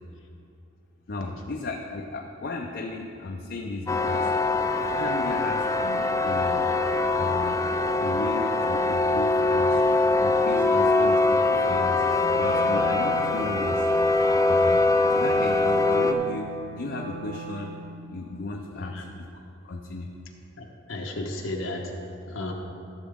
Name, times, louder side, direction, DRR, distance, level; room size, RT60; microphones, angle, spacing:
voice 1, 1.1-4.3 4.9-6.7 7.2-7.6 8.0-9.8 10.2-12.0 12.3-13.9 14.5-14.8 15.1-17.7 18.1-19.3 19.6-20.1, left 2 dB, 55° left, 1 dB, 0.6 m, -35 dB
sound 1, 3.9-16.1, left 2 dB, 15° left, 0.4 m, -23 dB
Wind instrument woodwind instrument, 12.2-18.2, right 3 dB, 70° right, 0.7 m, -39 dB
voice 2, 18.7-19.1 20.6-21.9 22.3-22.5, left 2 dB, 85° left, 0 dB, 1.1 m, -34 dB
14.0 x 7.2 x 3.6 m, 2.6 s
head